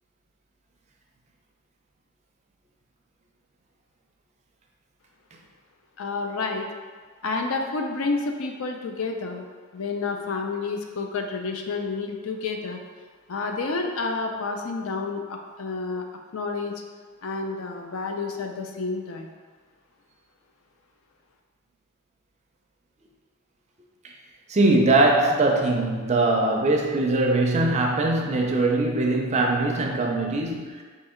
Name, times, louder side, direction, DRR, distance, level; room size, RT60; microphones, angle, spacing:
voice 1, 6.0-6.7 7.2-9.5 9.7-12.8 13.3-16.0 16.3-16.8 17.2-19.3, left 4 dB, 65° left, 3 dB, 0.4 m, -29 dB
voice 2, 24.5-30.8, right 2 dB, 30° right, 1 dB, 0.4 m, -21 dB
3.6 x 2.8 x 4.2 m, 1.5 s
head